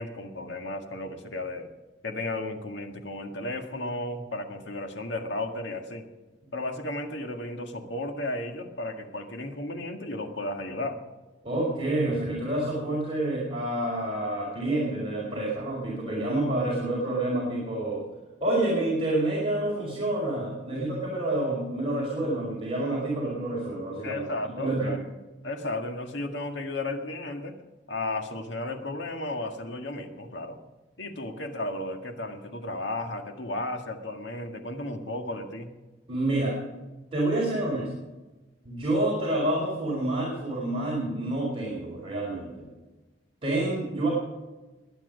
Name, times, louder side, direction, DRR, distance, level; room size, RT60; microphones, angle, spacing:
voice 1, 0.0-1.7 2.0-6.1 6.5-11.0 24.0-25.0 25.4-27.6 27.9-30.6 31.0-35.7, left 2 dB, 80° left, 4 dB, 1.9 m, -34 dB
voice 2, 11.4-18.0 18.4-24.2 24.6-25.0 36.1-36.6 37.1-37.9 38.6-42.7 43.4-44.1, right 1 dB, 30° right, -5 dB, 4.2 m, -28 dB
21.0 x 9.1 x 5.3 m, 1.2 s
head